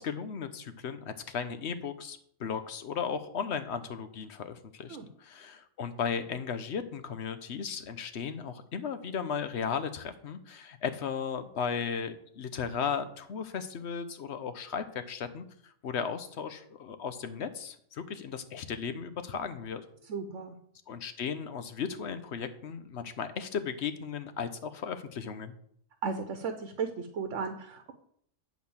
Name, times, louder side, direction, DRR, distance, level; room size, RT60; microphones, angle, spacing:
voice 1, 0.0-19.8 20.9-25.5, left 6 dB, 65° left, 10 dB, 1.0 m, -36 dB
voice 2, 20.1-20.6 26.0-27.9, right 5 dB, 80° right, 6 dB, 1.1 m, -35 dB
8.4 x 4.1 x 7.0 m, 0.66 s
omnidirectional pair, 1.2 m